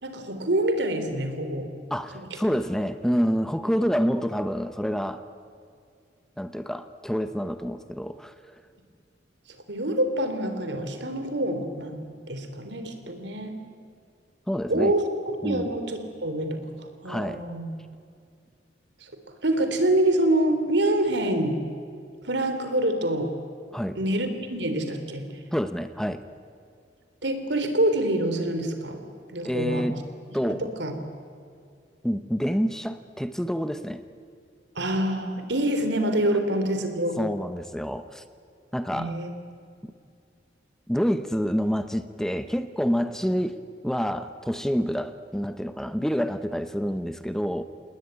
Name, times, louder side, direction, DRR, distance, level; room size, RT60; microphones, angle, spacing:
voice 1, 0.0-1.7 2.1-2.3 9.7-13.6 14.7-17.7 19.0-19.1 19.4-21.6 22.2-23.3 24.0-25.3 27.2-29.0 29.3-29.9 30.5-30.9 34.8-37.2 38.9-39.3, right 1 dB, 65° right, 7 dB, 3.6 m, -26 dB
voice 2, 1.9-5.2 6.4-8.3 14.5-14.9 15.4-15.7 17.0-17.4 23.7-24.0 25.5-26.2 29.4-30.0 30.3-30.6 32.0-34.0 37.2-38.2 38.7-39.1 40.9-47.6, equal, 5° left, 10 dB, 0.8 m, -27 dB
28.5 x 20.0 x 9.6 m, 2.4 s
head